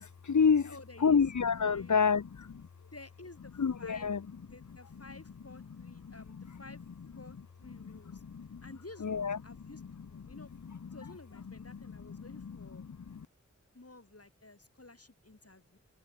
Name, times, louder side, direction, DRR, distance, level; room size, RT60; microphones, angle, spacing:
voice 1, 0.0-0.7 1.0-2.7 3.6-4.2 7.8-8.6 9.0-9.4 12.8-13.2, left 6 dB, 80° left, 0.8 m, -28 dB
voice 2, 0.6-1.3 1.6-2.0 2.9-4.1 4.4-6.8 7.1-8.2 8.6-10.5 10.8-12.9 13.7-15.8, left 2 dB, 55° left, 3.8 m, -52 dB
wide cardioid pair, 45°, 29 cm